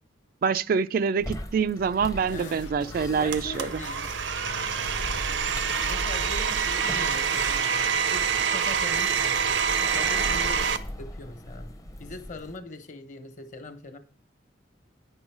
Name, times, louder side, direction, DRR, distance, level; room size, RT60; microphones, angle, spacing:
voice 1, 0.4-3.7, right 6 dB, 50° right, 0.3 m, -25 dB
sound 1, 1.2-12.6, left 1 dB, 20° left, 0.7 m, -38 dB
sound 2, 2.3-10.8, left 3 dB, 85° left, 0.5 m, -45 dB
voice 2, 2.3-2.6 3.2-4.1 5.9-9.6 9.9-10.7 11.0-11.7 12.0-14.0, left 2 dB, 45° left, 1.2 m, -41 dB
Domestic sounds home sounds, 3.3-10.8, right 7 dB, 85° right, 0.6 m, -26 dB
9.6 x 5.5 x 4.7 m
head